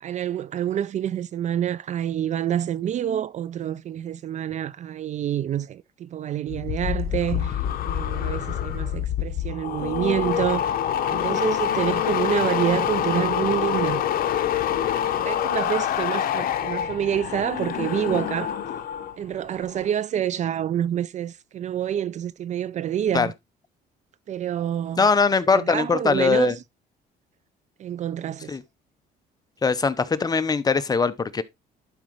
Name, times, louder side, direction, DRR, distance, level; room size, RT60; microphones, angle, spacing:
voice 1, 0.0-10.7 11.1-14.0 15.1-18.5 19.2-23.3 24.3-25.1 25.5-26.5 27.8-28.6, right 10 dB, 45° right, 0.4 m, -27 dB
sound 1, 6.5-19.1 19.4-19.9, left 10 dB, 60° left, 0.9 m, -26 dB
voice 2, 25.0-26.5 28.5-28.6 29.6-31.4, left 5 dB, 20° left, 0.8 m, -21 dB
11.5 x 4.9 x 3.1 m
cardioid pair, 110°, 17 cm